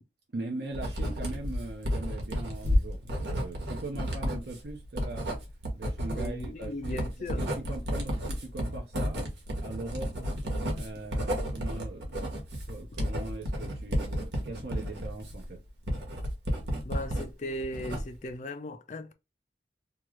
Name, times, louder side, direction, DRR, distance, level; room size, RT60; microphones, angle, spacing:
voice 1, 0.3-5.3 5.7-9.2 9.6-10.3 10.8-12.2 12.7-15.6, right 2 dB, 65° right, 0.7 m, -40 dB
Writing, 0.7-17.3 17.6-18.3, equal, 85° right, 1.2 m, -32 dB
voice 2, 6.1-7.4 16.8-19.1, left 1 dB, 40° left, 0.4 m, -37 dB
2.9 x 2.4 x 3.0 m
head